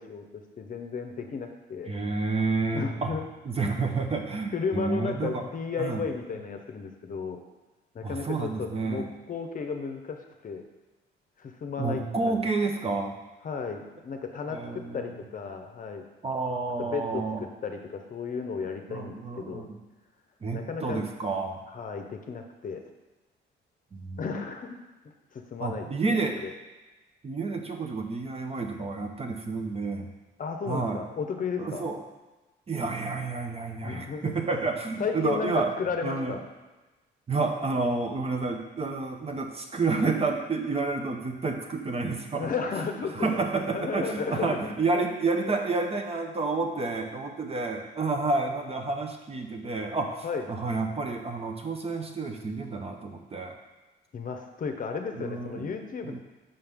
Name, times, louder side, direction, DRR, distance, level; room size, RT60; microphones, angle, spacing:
voice 1, 0.0-1.9 2.7-3.3 4.5-7.4 7.9-10.2 10.4-10.6 11.4-12.4 13.4-16.0 16.8-19.7 20.5-21.1 21.7-22.8 24.2-24.8 25.3-26.5 30.4-31.8 33.8-34.3 35.0-36.4 42.4-45.0 50.2-50.5 54.1-56.2, left 5 dB, 45° left, 5 dB, 0.7 m, -34 dB
voice 2, 1.9-3.1 3.4-5.4 5.8-6.0 8.0-9.1 11.8-13.2 14.5-15.1 16.2-17.4 18.9-19.8 20.4-21.6 23.9-24.4 25.6-26.4 27.2-30.1 30.7-31.0 31.6-32.0 32.7-35.7 36.0-36.4 37.3-42.5 43.1-53.6 55.2-55.7 56.0-56.2, right 3 dB, 30° right, 3 dB, 0.7 m, -30 dB
5.6 x 5.5 x 3.5 m, 1.2 s
cardioid pair, 90°, 20 cm